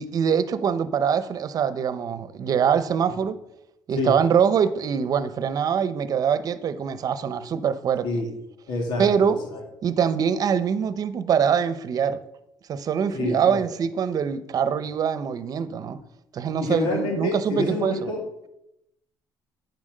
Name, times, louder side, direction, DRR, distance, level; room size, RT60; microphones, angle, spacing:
voice 1, 0.0-3.4 3.9-8.1 9.0-9.4 9.8-12.2 12.7-16.0 16.3-18.1, right 7 dB, 50° right, 13 dB, 0.9 m, -23 dB
voice 2, 8.7-9.4 13.1-13.6 16.6-18.2, left 2 dB, 85° left, 1 dB, 2.6 m, -27 dB
9.8 x 7.3 x 6.6 m, 0.83 s
cardioid pair, 115°, 8 cm